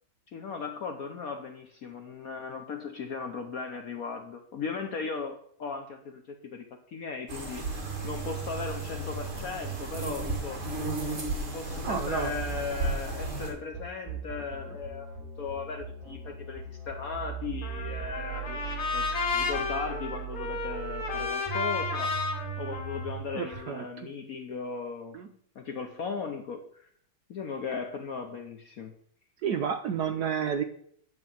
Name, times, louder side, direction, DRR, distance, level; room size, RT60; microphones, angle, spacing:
voice 1, 0.3-7.7 8.0-10.7 11.5-18.6 18.9-22.2 22.6-26.9 27.3-28.9, left 5 dB, 60° left, 5 dB, 0.9 m, -37 dB
sound 1, 7.3-13.5, right 2 dB, 40° right, 2.1 m, -35 dB
sound 2, 7.8-23.6, right 6 dB, 20° right, 3.7 m, -39 dB
voice 2, 11.8-12.3 23.3-24.1 25.1-25.3 29.4-30.6, right 7 dB, 70° right, 6 dB, 1.0 m, -31 dB
Trumpet, 17.6-23.9, left 5 dB, 90° left, 2.7 m, -33 dB
9.7 x 3.9 x 7.3 m, 0.63 s
omnidirectional pair, 2.3 m